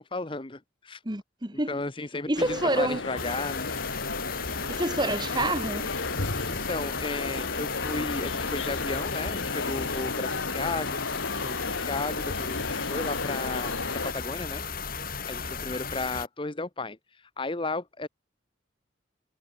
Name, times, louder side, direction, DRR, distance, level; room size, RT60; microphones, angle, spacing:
voice 1, 0.0-1.0 1.7-3.7 6.5-14.6 15.3-18.1, left 3 dB, 25° left, 1.0 m, -34 dB
voice 2, 1.1-1.7 2.3-3.0 4.7-5.9, right 2 dB, 25° right, 2.4 m, -27 dB
sound 1, 2.4-14.1, left 3 dB, 85° left, 2.4 m, -33 dB
sound 2, 3.2-16.3, left 5 dB, 50° left, 3.8 m, -35 dB
head